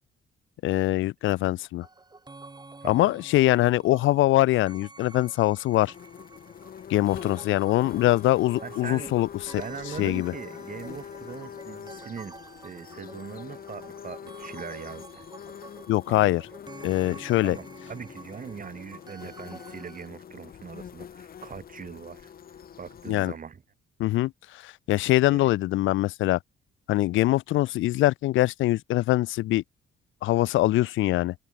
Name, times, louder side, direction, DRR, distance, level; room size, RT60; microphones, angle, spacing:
voice 1, 0.6-1.9 2.9-5.9 6.9-9.3 10.0-10.3 15.9-16.4 16.8-17.6 23.1-23.3 24.0-26.4 26.9-29.6 30.2-31.3, left 16 dB, 80° left, 0.5 m, -23 dB
sound 1, 1.8-20.1, right 3 dB, 20° right, 3.8 m, -49 dB
voice 2, 2.8-3.1 8.6-9.2 9.6-12.4 12.6-15.3 16.1-16.4 17.0-23.6 25.2-25.5, right 6 dB, 45° right, 4.2 m, -41 dB
sound 2, 5.7-23.1, left 8 dB, 50° left, 1.1 m, -44 dB
cardioid pair, 90°, 20 cm